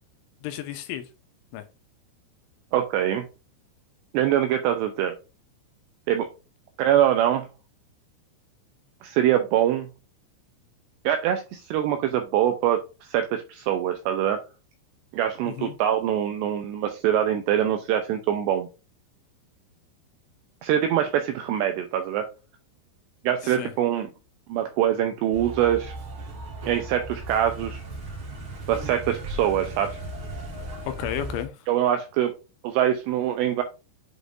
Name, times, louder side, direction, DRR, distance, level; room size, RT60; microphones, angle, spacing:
voice 1, 0.4-1.1 1.5-1.6 15.5-15.8 23.4-23.7 30.9-31.6, left 11 dB, 80° left, 3.0 m, -32 dB
voice 2, 2.7-3.2 4.1-5.1 6.1-6.3 6.8-7.5 9.0-9.9 11.0-14.4 15.1-18.7 20.6-22.3 23.2-24.1 24.5-25.9 26.7-27.8 28.7-30.0 31.7-32.3 32.6-33.6, right 10 dB, 90° right, 2.4 m, -24 dB
sound 1, 25.3-31.4, right 2 dB, 45° right, 1.8 m, -36 dB
7.9 x 5.1 x 2.6 m
omnidirectional pair, 5.6 m